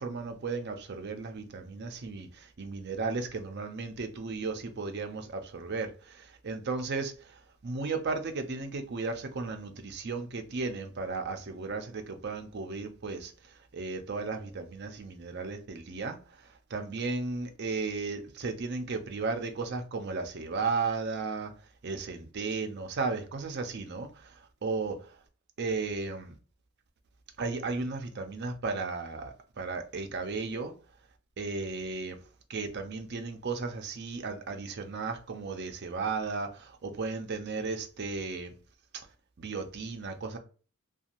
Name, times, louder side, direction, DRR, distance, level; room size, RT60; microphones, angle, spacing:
voice 1, 0.0-7.1 7.6-13.3 13.7-16.2 16.7-21.5 21.8-24.1 24.6-25.0 25.6-26.3 27.4-30.7 31.4-32.2 32.5-38.5 39.4-40.4, right 4 dB, 50° right, 0.5 m, -35 dB
2.6 x 2.3 x 2.9 m
head